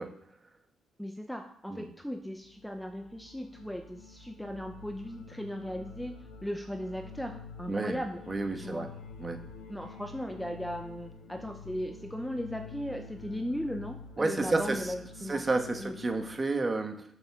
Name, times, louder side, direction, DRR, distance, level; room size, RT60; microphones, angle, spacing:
voice 1, 1.0-8.2 8.6-8.9 9.7-15.4 15.8-16.0, equal, ahead, 6 dB, 0.7 m, -37 dB
sound 1, 2.2-16.3, left 4 dB, 85° left, 1.7 m, -48 dB
voice 2, 7.7-8.0 8.3-8.9 9.2-9.4 14.2-14.9 15.3-17.0, right 3 dB, 25° right, 6 dB, 1.2 m, -30 dB
7.0 x 6.6 x 5.9 m, 0.70 s
cardioid pair, 90°, 0 cm